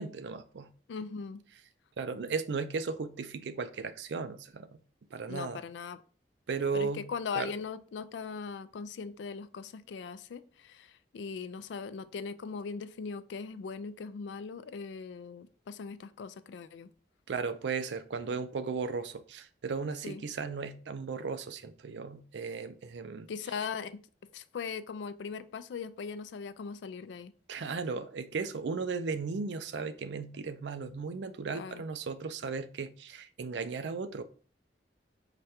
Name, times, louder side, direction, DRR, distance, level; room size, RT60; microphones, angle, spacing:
voice 1, 0.0-0.7 2.0-4.7 5.1-5.6 6.5-7.0 7.4-7.5 17.3-23.3 27.5-34.2, right 4 dB, 85° right, 0.4 m, -36 dB
voice 2, 0.9-1.4 5.3-6.0 6.7-16.9 20.0-20.2 23.3-24.0 24.3-27.3 31.5-31.8, left 5 dB, 90° left, 0.3 m, -40 dB
4.9 x 2.2 x 4.2 m
head